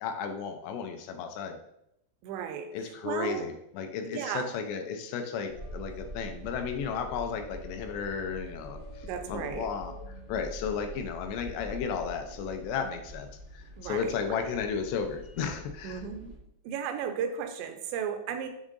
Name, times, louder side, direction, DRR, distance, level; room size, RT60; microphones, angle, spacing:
voice 1, 0.0-1.6 2.7-9.9 10.3-16.0, left 6 dB, 80° left, 6 dB, 2.5 m, -34 dB
voice 2, 2.2-2.7 3.0-3.5 4.1-4.5 9.0-9.7 13.8-14.6 15.8-16.3 16.6-18.5, right 8 dB, 85° right, 6 dB, 2.9 m, -35 dB
sound 1, 5.5-16.4, equal, 40° right, 0.7 m, -44 dB
7.2 x 3.7 x 3.7 m, 0.78 s
omnidirectional pair, 5.1 m